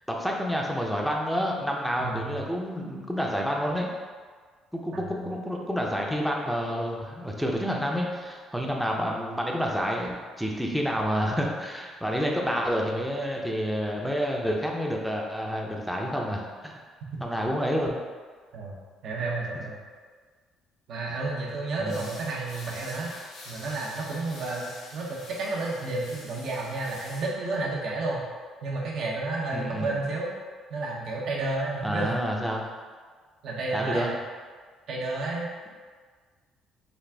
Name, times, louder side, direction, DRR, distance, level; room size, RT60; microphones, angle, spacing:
voice 1, 0.1-3.9 4.8-16.7 17.2-18.0 21.8-22.1 29.5-29.9 31.8-32.7 33.7-34.1, equal, ahead, -1 dB, 0.6 m, -29 dB
voice 2, 2.0-2.4 4.9-5.3 18.5-18.8 19.0-19.8 20.9-23.1 23.5-28.2 28.6-30.3 30.7-32.1 33.4-34.1 34.9-35.5, right 2 dB, 70° right, -3 dB, 0.9 m, -31 dB
sound 1, 21.9-27.3, left 2 dB, 80° left, 0.9 m, -46 dB
4.1 x 2.4 x 3.4 m, 1.5 s
supercardioid pair, 80°, 0 cm